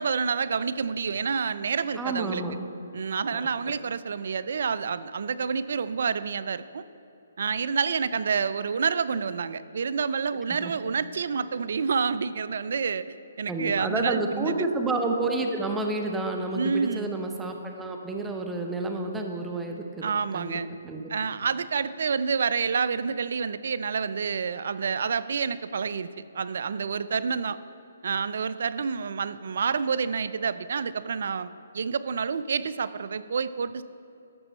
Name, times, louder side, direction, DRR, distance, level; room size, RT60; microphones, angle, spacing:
voice 1, 0.0-2.4 2.9-6.8 7.4-14.7 16.5-17.1 20.0-20.7 21.1-26.1 26.3-27.6 28.0-33.8, right 5 dB, 65° right, 15 dB, 0.3 m, -28 dB
voice 2, 2.0-2.6 3.3-3.4 10.6-10.7 13.5-20.5 20.8-21.0, right 2 dB, 10° right, 2 dB, 0.8 m, -30 dB
12.5 x 6.9 x 4.3 m, 2.9 s
hypercardioid pair, 140°, 0 cm